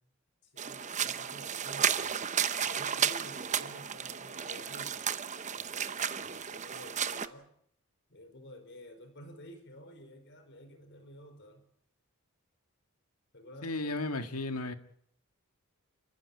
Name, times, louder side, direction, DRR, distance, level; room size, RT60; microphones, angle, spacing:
voice 1, 0.4-5.2 5.5-7.5 8.1-11.7 13.3-13.8, equal, 55° left, 4.6 m, -51 dB
sound 1, 0.6-7.3, right 8 dB, 35° right, 0.9 m, -33 dB
voice 2, 13.6-14.7, left 2 dB, 90° left, 1.8 m, -34 dB
28.5 x 14.5 x 8.3 m
head